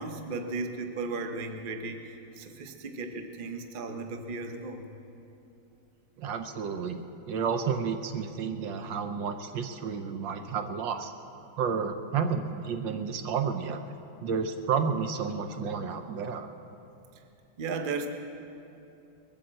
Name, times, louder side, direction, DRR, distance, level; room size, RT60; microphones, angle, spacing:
voice 1, 0.0-4.9 17.6-18.1, right 3 dB, 45° right, 5 dB, 0.6 m, -35 dB
voice 2, 6.2-7.0 7.3-11.1 11.6-13.8 14.2-16.5, right 6 dB, 70° right, 7 dB, 1.3 m, -31 dB
21.0 x 8.7 x 7.6 m, 2.8 s
omnidirectional pair, 2.4 m